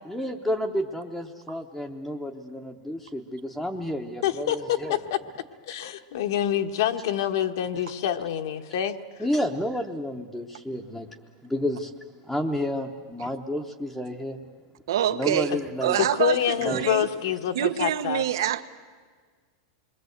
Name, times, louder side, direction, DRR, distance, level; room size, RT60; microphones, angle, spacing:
voice 1, 0.1-5.0 9.2-11.1 11.4-11.9 12.2-14.4 15.1-16.0 16.6-16.9, equal, ahead, 0.8 m, -30 dB
voice 2, 4.2-5.2 5.6-9.0 16.0-18.2, left 10 dB, 60° left, 1.1 m, -26 dB
voice 3, 14.9-15.5 15.8-17.1 17.5-18.6, right 11 dB, 85° right, 1.1 m, -26 dB
27.5 x 22.5 x 7.9 m
supercardioid pair, 175°, 2 cm